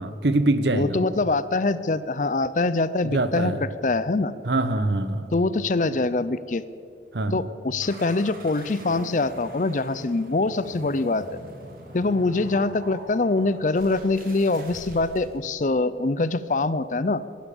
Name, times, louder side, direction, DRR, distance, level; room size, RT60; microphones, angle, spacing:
voice 1, 0.0-1.1 3.0-3.6 4.4-5.3 7.1-7.4, right 2 dB, 75° right, 12 dB, 1.0 m, -24 dB
voice 2, 0.7-3.5 3.8-4.3 5.3-6.6 7.3-11.3 11.9-17.2, left 3 dB, 45° left, 15 dB, 0.5 m, -24 dB
sound 1, 7.8-15.4, right 1 dB, 50° right, 2.4 m, -43 dB
17.0 x 11.5 x 7.1 m, 2.5 s
head